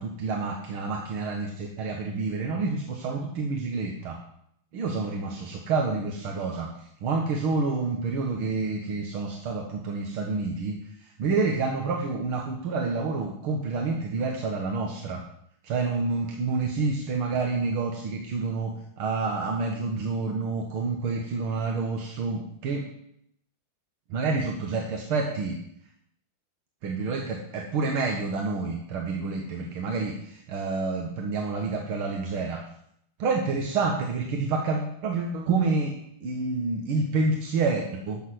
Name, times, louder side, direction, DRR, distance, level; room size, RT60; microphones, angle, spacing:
voice 1, 0.0-4.2 4.7-6.7 7.0-10.8 11.2-15.2 15.6-22.9 24.1-25.6 26.8-32.6 33.2-35.9 36.2-38.2, right 4 dB, 80° right, 1 dB, 2.3 m, -28 dB
13.5 x 6.4 x 7.8 m, 0.71 s
omnidirectional pair, 2.3 m